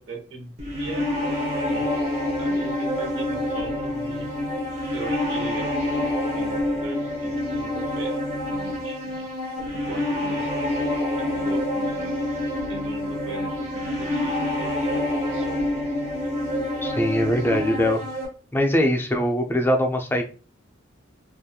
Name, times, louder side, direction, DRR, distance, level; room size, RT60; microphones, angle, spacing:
voice 1, 0.0-1.9 2.4-4.3 4.9-6.1 6.3-9.3 9.7-10.5 11.2-12.2 12.7-15.0 15.3-15.6, right 3 dB, 70° right, 2 dB, 0.8 m, -39 dB
sound 1, 0.6-18.3, left 1 dB, 35° right, 0.9 m, -27 dB
voice 2, 16.8-18.0 18.5-20.2, equal, 10° left, 3 dB, 0.4 m, -22 dB
2.8 x 2.4 x 2.2 m, 0.36 s
head